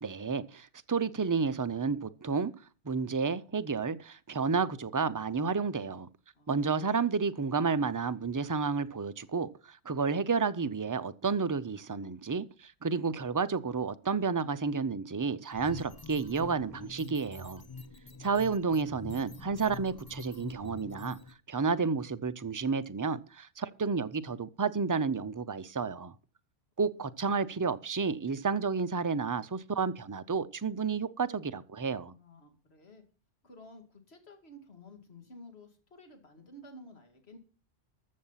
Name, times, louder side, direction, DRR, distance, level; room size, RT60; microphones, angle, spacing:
voice 1, 0.0-2.5 2.8-6.1 6.5-17.6 18.2-21.2 21.5-26.1 26.8-32.1, right 5 dB, 30° right, 0.4 m, -31 dB
voice 2, 6.3-7.0 17.6-18.5 27.0-27.7 32.1-33.0 33.4-37.4, left 1 dB, 55° left, 2.6 m, -54 dB
sound 1, 15.5-21.3, left 3 dB, 20° left, 0.8 m, -46 dB
14.0 x 7.0 x 5.7 m
omnidirectional pair, 1.3 m